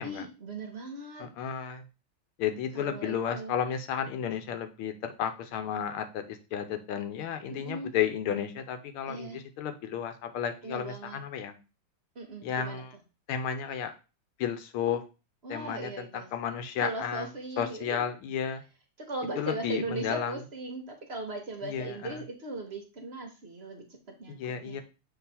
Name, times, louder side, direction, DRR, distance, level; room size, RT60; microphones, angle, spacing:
voice 1, 0.0-1.3 2.7-3.5 7.5-7.9 9.1-9.4 10.6-11.2 12.1-12.8 15.4-16.3 16.8-18.0 19.0-24.8, right 2 dB, 55° right, 3 dB, 0.7 m, -38 dB
voice 2, 1.2-1.8 2.4-11.5 12.4-12.9 13.3-13.9 14.4-15.0 15.5-17.3 17.6-18.6 19.4-20.3 21.6-22.2 24.3-24.8, left 8 dB, 85° left, 8 dB, 1.7 m, -33 dB
7.1 x 3.3 x 4.2 m, 0.31 s
omnidirectional pair, 2.4 m